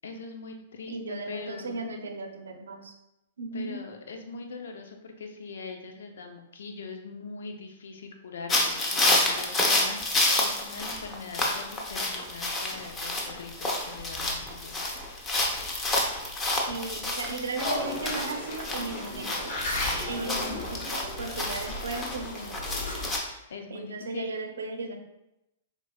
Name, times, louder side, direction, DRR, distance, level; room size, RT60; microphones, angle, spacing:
voice 1, 0.0-1.8 3.5-14.8 20.1-20.6 23.2-24.3, left 4 dB, 75° left, 4 dB, 0.7 m, -42 dB
voice 2, 0.9-2.9 3.4-3.8 16.7-19.5 20.1-23.1 23.7-25.0, right 3 dB, 80° right, 5 dB, 0.6 m, -36 dB
sound 1, 8.5-23.2, left 2 dB, 20° left, 0.8 m, -29 dB
sound 2, 17.6-23.1, left 1 dB, 50° left, 1.3 m, -35 dB
4.6 x 4.1 x 2.3 m, 0.89 s
hypercardioid pair, 120°, 0 cm